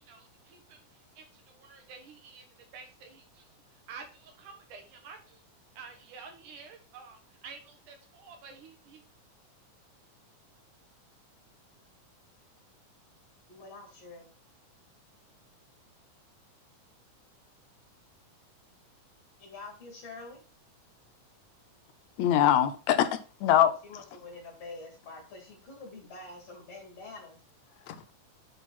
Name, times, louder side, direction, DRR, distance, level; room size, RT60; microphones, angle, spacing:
voice 1, 0.0-5.4 5.7-9.0, right 5 dB, 75° right, 3.1 m, -50 dB
voice 2, 13.5-14.4 19.4-20.4 23.8-27.4, left 3 dB, 50° left, 3.5 m, -46 dB
voice 3, 22.2-24.0 27.9-28.0, left 10 dB, 75° left, 1.8 m, -24 dB
9.2 x 4.1 x 4.2 m
omnidirectional pair, 3.7 m